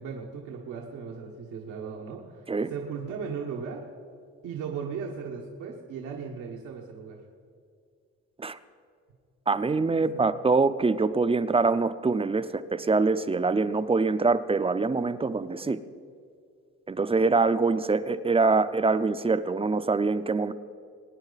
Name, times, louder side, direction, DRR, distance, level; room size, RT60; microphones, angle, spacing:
voice 1, 0.0-3.8 4.4-7.2 10.1-10.3, right 6 dB, 90° right, -1 dB, 1.4 m, -37 dB
voice 2, 9.5-15.8 16.9-20.5, right 4 dB, 20° right, 12 dB, 0.6 m, -24 dB
22.5 x 9.7 x 4.1 m, 2.2 s
cardioid pair, 90°, 30 cm